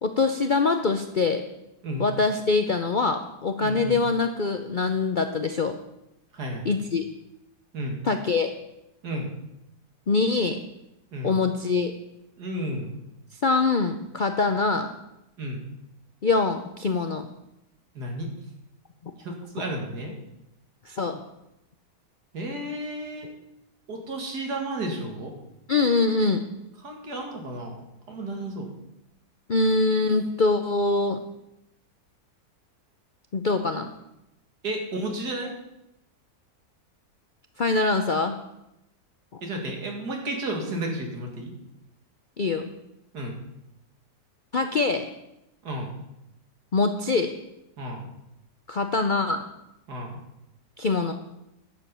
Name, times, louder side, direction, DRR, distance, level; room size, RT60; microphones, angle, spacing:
voice 1, 0.0-1.4 2.0-5.8 6.6-7.0 8.0-8.5 10.1-10.6 11.2-11.9 13.4-14.9 16.2-17.3 20.9-21.2 25.7-26.4 29.5-31.2 33.3-33.9 37.6-38.4 39.3-39.4 42.4-42.7 44.5-45.1 46.7-47.3 48.7-49.4 50.8-51.1, left 3 dB, 55° left, 6 dB, 0.5 m, -24 dB
voice 2, 3.6-4.0 6.3-6.7 7.7-8.0 9.0-9.3 11.1-11.4 12.4-12.9 15.4-15.6 17.9-18.3 19.2-20.2 22.3-23.3 23.9-25.3 26.8-27.8 28.1-28.7 34.6-35.5 39.4-41.5 43.1-43.4 45.6-45.9 47.8-48.1 49.9-50.2, right 1 dB, 80° right, 2 dB, 2.7 m, -32 dB
11.5 x 7.0 x 7.0 m, 0.86 s
omnidirectional pair, 1.7 m